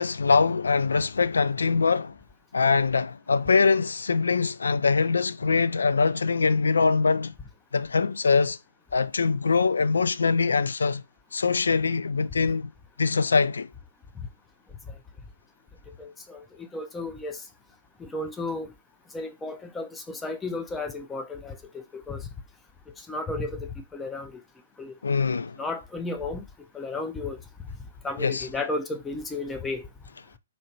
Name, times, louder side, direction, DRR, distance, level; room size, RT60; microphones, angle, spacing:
voice 1, 0.0-2.2 2.5-7.3 7.7-8.6 8.9-11.0 11.3-12.7 13.0-13.7 25.0-25.6 28.2-28.5, left 4 dB, 70° left, 0.3 m, -23 dB
voice 2, 16.0-17.4 18.0-18.7 19.1-22.3 23.1-24.4 24.8-24.9 25.6-26.4 26.7-27.4 28.0-29.9, left 2 dB, 10° left, 0.5 m, -33 dB
4.3 x 2.8 x 3.0 m
figure-of-eight pair, 125°, 0 cm